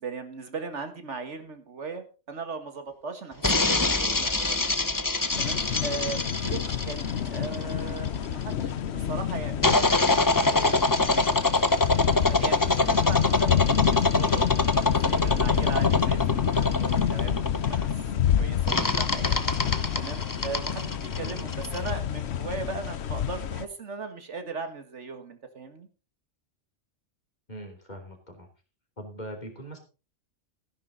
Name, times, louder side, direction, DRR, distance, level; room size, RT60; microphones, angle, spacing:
voice 1, 0.0-5.1 5.4-11.3 12.3-17.9 18.4-19.4 20.0-25.9, right 4 dB, 70° right, 8 dB, 1.9 m, -38 dB
sound 1, 3.4-8.3 9.6-18.0 18.7-21.9, left 2 dB, 20° left, 0.8 m, -25 dB
sound 2, 5.3-23.7, left 9 dB, 65° left, 1.0 m, -28 dB
voice 2, 27.5-28.5 29.0-29.8, equal, 35° left, 4 dB, 3.3 m, -41 dB
15.0 x 10.5 x 3.9 m, 0.33 s
omnidirectional pair, 1.3 m